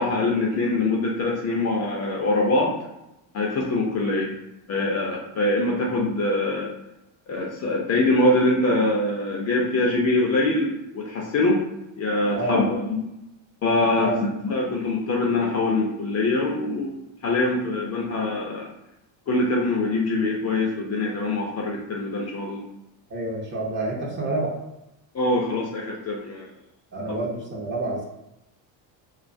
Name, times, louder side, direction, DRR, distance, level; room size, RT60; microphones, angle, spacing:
voice 1, 0.0-2.8 3.3-4.3 4.7-6.7 7.3-11.6 12.0-13.0 13.6-17.0 17.2-18.7 19.3-22.6 25.1-26.5, left 2 dB, 35° left, -2 dB, 0.4 m, -23 dB
voice 2, 23.1-24.5 26.9-28.0, right 2 dB, 25° right, -4 dB, 0.5 m, -28 dB
2.3 x 2.3 x 2.5 m, 0.90 s
cardioid pair, 120°, 50 cm